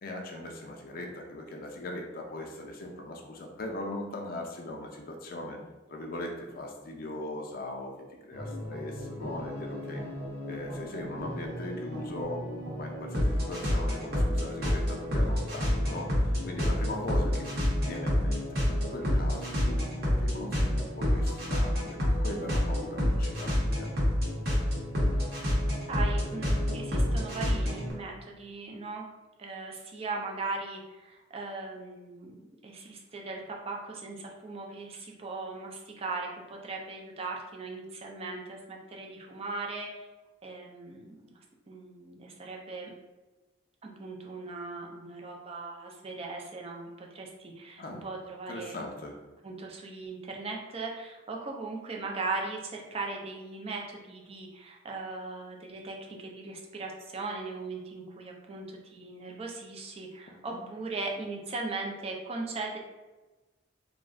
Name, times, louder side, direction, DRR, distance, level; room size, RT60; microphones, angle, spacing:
voice 1, 0.0-5.6 5.9-10.0 10.5-12.5 12.8-19.8 20.2-23.9 47.8-48.0 48.5-49.2 60.5-60.6, left 1 dB, 50° left, 1 dB, 0.4 m, -39 dB
sound 1, 8.3-27.9, left 1 dB, 50° right, 0.8 m, -29 dB
voice 2, 25.9-29.0 29.4-32.4 32.6-40.1 40.4-41.4 41.7-42.9 43.8-48.8 49.4-62.8, right 3 dB, 30° right, 0 dB, 0.4 m, -38 dB
2.3 x 2.1 x 3.6 m, 1.2 s
head